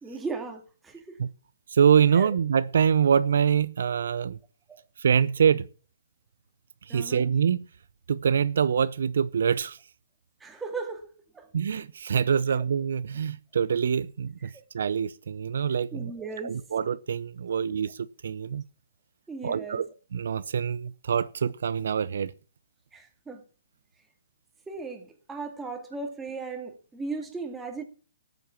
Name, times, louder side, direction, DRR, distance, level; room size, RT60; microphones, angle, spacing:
voice 1, 0.0-1.2 2.1-2.3 4.7-4.8 6.9-7.2 10.4-11.1 11.3-11.5 12.5-12.6 14.4-14.5 15.9-16.6 19.3-19.8 22.9-23.4 24.7-27.8, right 4 dB, 10° right, 2.2 m, -37 dB
voice 2, 1.7-4.4 5.0-5.6 6.9-7.7 8.1-9.8 11.5-14.5 14.7-16.1 16.4-18.6 19.4-19.8 20.1-22.3, right 7 dB, 70° right, 0.6 m, -25 dB
14.0 x 7.8 x 5.9 m
hypercardioid pair, 150°, 0 cm